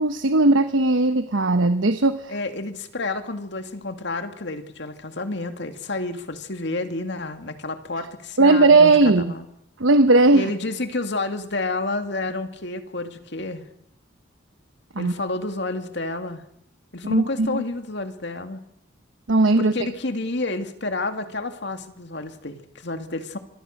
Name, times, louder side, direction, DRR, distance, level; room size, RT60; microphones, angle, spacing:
voice 1, 0.0-2.3 8.4-9.3 9.8-10.5 14.9-15.1 17.0-17.6 19.3-19.9, right 2 dB, 85° right, 10 dB, 1.1 m, -17 dB
voice 2, 2.3-9.5 10.3-13.6 15.0-16.4 16.9-18.6 19.6-23.4, left 2 dB, 65° left, 8 dB, 2.3 m, -30 dB
26.5 x 23.0 x 6.6 m, 0.75 s
head